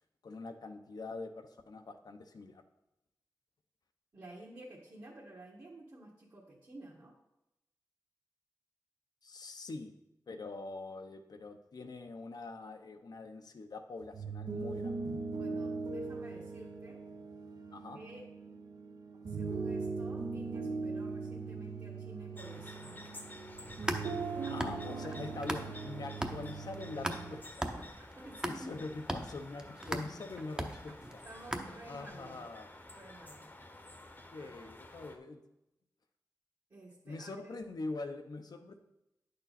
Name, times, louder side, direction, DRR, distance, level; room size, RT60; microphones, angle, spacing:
voice 1, 0.2-2.6 9.2-9.9 10.3-15.0 17.7-18.0 24.5-27.4 28.4-31.2 31.9-32.7 34.2-35.4 37.0-38.9, left 3 dB, 70° left, 7 dB, 0.8 m, -44 dB
voice 2, 4.1-7.1 15.4-17.0 17.9-18.3 19.3-23.1 24.4-24.6 27.7-29.2 31.2-32.4 32.9-33.5 34.4-34.5 36.7-37.4, right 1 dB, 50° right, -5 dB, 1.4 m, -52 dB
sound 1, 14.0-27.4, right 4 dB, 70° right, 0.9 m, -40 dB
sound 2, 22.3-35.2, left 1 dB, 30° left, 0.9 m, -52 dB
sound 3, 23.6-25.9 26.2-32.1, right 1 dB, 10° right, 0.8 m, -39 dB
10.0 x 6.7 x 4.2 m, 0.89 s
wide cardioid pair, 105°, 7 cm